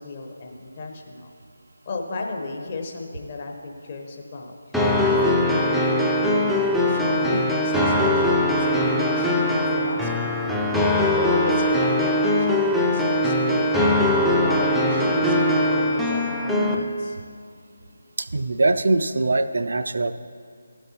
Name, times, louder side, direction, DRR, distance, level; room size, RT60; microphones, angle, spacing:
voice 1, 0.0-1.3 1.8-4.5 5.0-10.1 10.4-17.2, left 3 dB, 35° left, 2 dB, 0.9 m, -34 dB
sound 1, 4.7-16.8, left 1 dB, ahead, 0.4 m, -21 dB
voice 2, 18.2-20.1, right 2 dB, 60° right, 11 dB, 0.4 m, -22 dB
13.5 x 7.9 x 2.9 m, 2.2 s
figure-of-eight pair, 155°, 0 cm